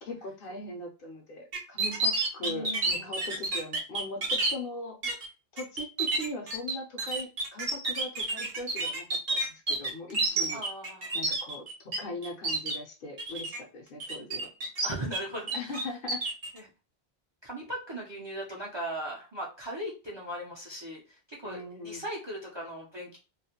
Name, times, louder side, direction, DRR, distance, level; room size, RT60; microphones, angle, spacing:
voice 1, 0.0-5.0 5.5-10.6 11.1-14.5 15.5-16.2 21.4-22.0, left 2 dB, 65° left, 2 dB, 0.8 m, -40 dB
sound 1, 1.5-4.5 5.0-5.3 5.6-12.0 12.2-12.8 13.2-13.6 14.0-15.2 15.5-16.5, right 2 dB, 55° right, 0.8 m, -29 dB
voice 2, 2.4-3.1 10.5-11.1 14.8-15.8 16.5-16.7 17.4-21.0 21.3-23.2, right 1 dB, 40° right, -2 dB, 0.4 m, -38 dB
2.4 x 2.1 x 2.7 m, 0.32 s
omnidirectional pair, 1.1 m